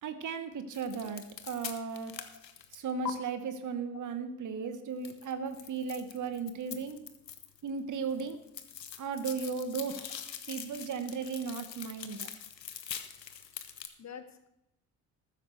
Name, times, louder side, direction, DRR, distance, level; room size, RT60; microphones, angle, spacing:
voice 1, 0.0-2.1 2.7-7.0 7.6-8.4 9.0-10.1 10.5-12.3, right 5 dB, 40° right, 10 dB, 1.3 m, -36 dB
sound 1, 0.7-3.1 5.0-7.7 7.9-13.9, left 9 dB, 85° left, 0.9 m, -43 dB
voice 2, 14.0-14.5, left 7 dB, 35° left, 9 dB, 1.3 m, -49 dB
14.0 x 13.0 x 3.3 m, 0.81 s
figure-of-eight pair, 50°, 48 cm